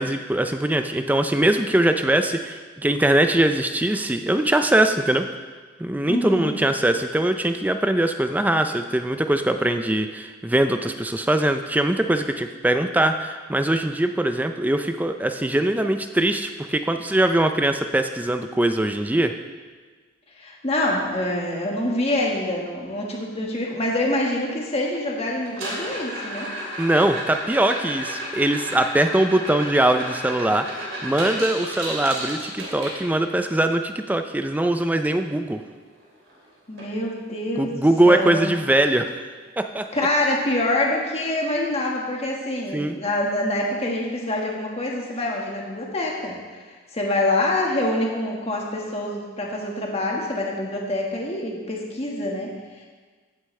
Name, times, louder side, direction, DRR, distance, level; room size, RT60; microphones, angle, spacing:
voice 1, 0.0-5.3 5.8-19.3 26.8-35.6 37.6-39.1 39.6-39.9 42.7-43.0, right 1 dB, 10° right, 7 dB, 0.4 m, -22 dB
voice 2, 6.1-6.5 20.4-26.5 36.7-37.7 38.0-38.5 39.9-46.4 46.6-52.5, left 1 dB, 30° left, -2 dB, 1.6 m, -25 dB
sound 1, 25.4-33.4 35.7-35.8 36.0-36.4 36.8-36.9 37.4-37.5 39.4-39.5, right 1 dB, 75° right, 3.2 m, -33 dB
15.5 x 8.2 x 3.3 m, 1.4 s
head